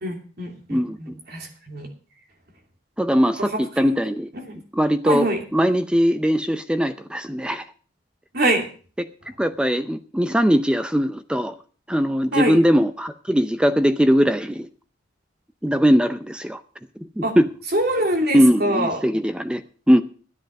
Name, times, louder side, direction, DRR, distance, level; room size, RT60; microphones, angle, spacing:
voice 1, 0.0-1.9 3.4-4.0 4.3-4.6 5.0-5.4 8.3-8.7 12.3-12.6 17.2-17.3 17.7-19.0, right 1 dB, 55° right, 2 dB, 2.9 m, -24 dB
voice 2, 3.0-4.3 4.7-5.3 5.5-7.6 9.4-11.5 11.9-14.7 15.6-16.6 17.0-17.5 18.3-19.6 19.9-20.0, equal, 5° right, 10 dB, 0.6 m, -20 dB
13.0 x 10.0 x 5.2 m, 0.40 s
head